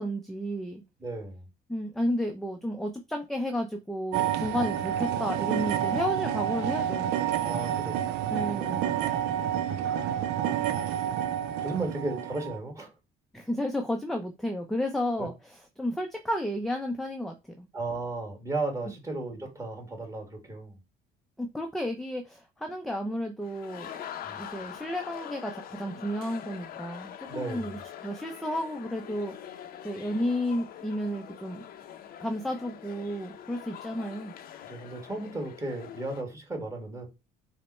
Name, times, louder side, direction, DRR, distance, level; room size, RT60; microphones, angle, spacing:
voice 1, 0.0-0.8 1.7-7.1 8.3-8.9 13.3-15.3 15.8-17.7 21.4-29.3 29.8-31.6 32.2-34.3, equal, ahead, 0.5 m, -32 dB
voice 2, 1.0-1.4 7.4-8.1 9.3-9.8 11.6-12.9 15.2-15.3 17.7-20.8 24.2-24.4 27.3-27.8 34.6-37.1, right 2 dB, 20° right, 1.5 m, -35 dB
sound 1, 4.1-12.6, right 10 dB, 85° right, 0.5 m, -29 dB
sound 2, 23.4-36.2, left 10 dB, 60° left, 0.6 m, -44 dB
5.2 x 2.1 x 4.1 m
cardioid pair, 110°, 17 cm